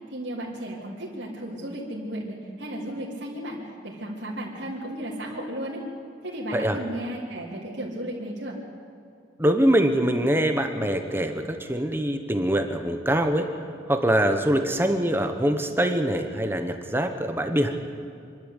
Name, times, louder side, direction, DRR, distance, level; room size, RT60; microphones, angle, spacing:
voice 1, 0.1-5.8 6.2-8.6, right 1 dB, 75° right, -5 dB, 3.3 m, -34 dB
voice 2, 9.4-13.5 13.9-17.8, right 1 dB, 10° right, 6 dB, 1.1 m, -23 dB
25.5 x 12.5 x 8.2 m, 2.4 s
head